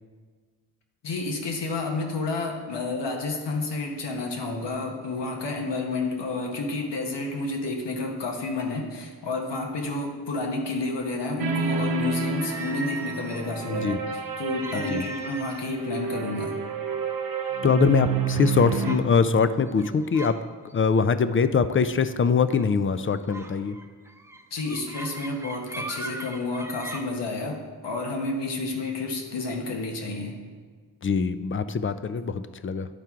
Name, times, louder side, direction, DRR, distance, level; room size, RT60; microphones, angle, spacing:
voice 1, 1.0-16.6 17.8-17.9 24.5-30.3, left 2 dB, 80° left, 2 dB, 1.2 m, -30 dB
sound 1, 11.4-19.0, right 6 dB, 55° right, 0.8 m, -29 dB
sound 2, 12.4-13.6 14.6-15.8 16.1-16.3 17.0-17.1 17.6-18.0 18.8-19.1 19.7-20.4 20.7-21.0 22.5-22.7 23.3-27.0, right 2 dB, 5° right, 0.7 m, -39 dB
voice 2, 13.7-14.0 14.7-15.0 17.6-20.4 20.7-23.8 31.0-32.9, left 5 dB, 30° left, 12 dB, 0.4 m, -23 dB
10.5 x 4.5 x 3.6 m, 1.5 s
cardioid pair, 45°, 42 cm